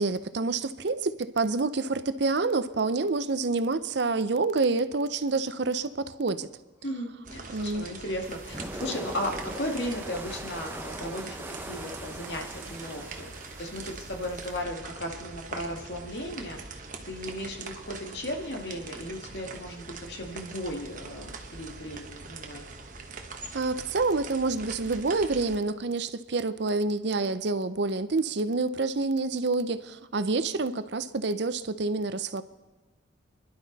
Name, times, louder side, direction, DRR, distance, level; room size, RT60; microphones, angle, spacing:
voice 1, 0.0-6.5 7.5-7.8 23.5-32.4, right 3 dB, 60° right, 13 dB, 0.6 m, -28 dB
voice 2, 6.8-13.3 13.6-22.6, left 1 dB, 60° left, 2 dB, 2.1 m, -36 dB
sound 1, 7.2-25.6, right 4 dB, 40° right, 1.2 m, -43 dB
sound 2, 8.2-14.6, right 1 dB, 10° right, 0.8 m, -41 dB
28.0 x 11.5 x 4.1 m, 1.2 s
head